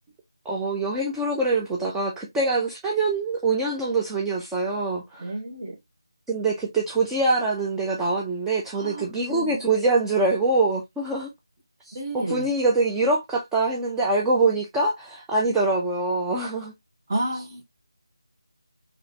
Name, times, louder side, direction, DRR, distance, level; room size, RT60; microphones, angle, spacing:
voice 1, 0.5-5.2 6.3-11.3 11.9-16.7, right 3 dB, 5° right, 0.4 m, -24 dB
voice 2, 5.2-5.7 8.7-9.7 11.9-12.5 17.1-17.7, right 1 dB, 30° right, 1.2 m, -31 dB
3.9 x 2.9 x 2.7 m
figure-of-eight pair, 160°, 3 cm